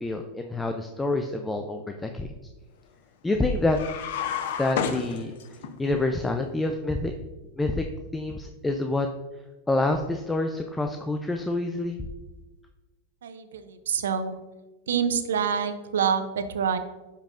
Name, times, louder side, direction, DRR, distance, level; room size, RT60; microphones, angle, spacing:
voice 1, 0.0-2.3 3.2-3.8 4.6-5.3 5.8-7.1 7.6-7.8 8.1-9.1 9.7-12.0, left 2 dB, 10° left, 4 dB, 0.5 m, -27 dB
sound 1, 3.7-5.7, left 8 dB, 70° left, 0.7 m, -30 dB
voice 2, 13.2-14.4 14.9-16.8, right 7 dB, 90° right, 10 dB, 0.6 m, -26 dB
9.9 x 5.6 x 2.5 m, 1.2 s
hypercardioid pair, 115°, 0 cm